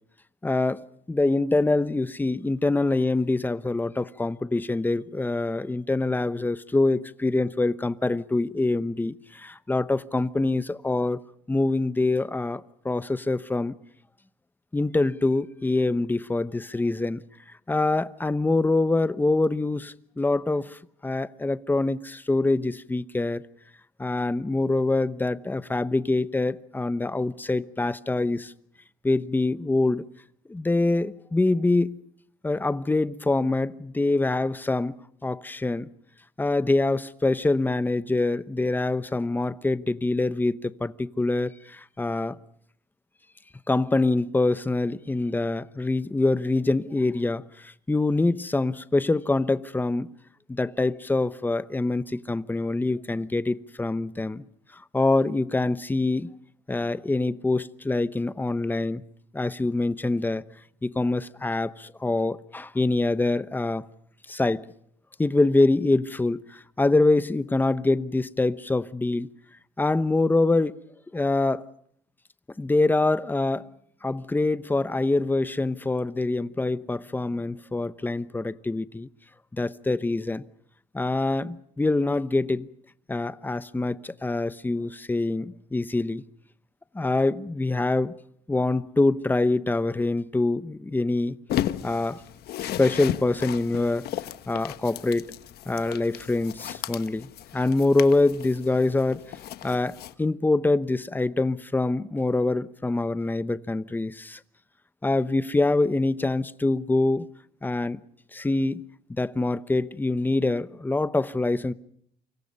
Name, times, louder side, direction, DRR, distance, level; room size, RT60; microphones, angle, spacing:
voice 1, 0.4-11.2 11.5-13.7 14.7-17.2 17.7-23.4 24.0-28.5 29.0-30.0 30.5-32.0 32.4-35.0 35.2-35.9 36.4-42.4 43.7-50.1 50.5-54.4 54.7-56.3 56.7-59.0 59.3-60.4 60.8-63.9 64.3-64.7 65.2-69.3 69.8-70.7 71.1-71.6 72.6-73.7 74.0-79.1 79.5-80.4 80.9-82.7 83.1-86.2 86.9-88.1 88.5-91.4 91.8-92.2 92.6-94.1 94.5-95.3 95.7-99.2 99.6-104.4 105.0-107.3 107.6-108.0 108.3-108.8 109.1-111.7, left 2 dB, 10° left, 0.9 m, -25 dB
sound 1, 91.5-100.1, left 12 dB, 70° left, 1.3 m, -35 dB
29.0 x 25.5 x 5.4 m
cardioid pair, 110°, 17 cm